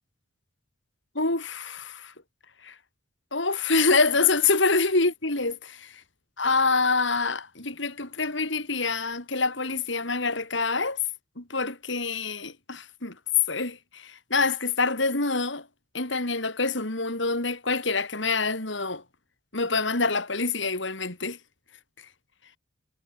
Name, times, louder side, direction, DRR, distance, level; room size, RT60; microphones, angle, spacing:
voice 1, 1.1-2.1 2.6-2.7 3.3-6.0 6.4-11.0 11.4-13.2 13.5-15.7 15.9-19.0 19.5-21.4, left 3 dB, 65° left, 4.0 m, -26 dB
head